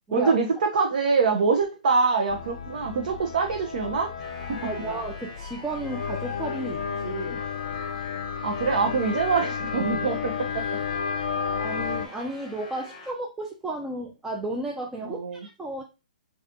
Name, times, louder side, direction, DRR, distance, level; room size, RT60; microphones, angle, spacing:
voice 1, 0.1-4.1 4.5-4.7 8.4-10.8 15.0-15.5, right 4 dB, 60° right, 3 dB, 0.6 m, -24 dB
sound 1, 2.3-12.1, left 6 dB, 60° left, 0.4 m, -32 dB
sound 2, 4.2-13.1, left 3 dB, 25° left, 0.9 m, -44 dB
voice 2, 4.6-7.4 11.6-15.8, right 2 dB, 10° right, 0 dB, 0.4 m, -33 dB
4.0 x 2.4 x 2.6 m, 0.30 s
hypercardioid pair, 140°, 5 cm